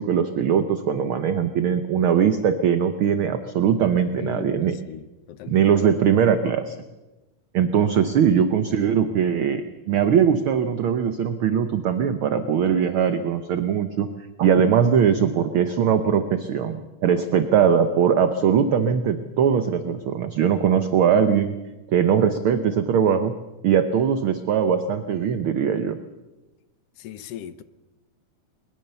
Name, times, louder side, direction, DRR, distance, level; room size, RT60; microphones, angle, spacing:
voice 1, 0.0-4.7 5.5-6.7 7.5-14.1 14.4-21.6 21.9-23.3 23.6-26.0, right 8 dB, 70° right, 1.2 m, -21 dB
voice 2, 4.0-5.6 27.0-27.6, left 9 dB, 70° left, 1.6 m, -38 dB
21.5 x 21.0 x 6.9 m
omnidirectional pair, 3.6 m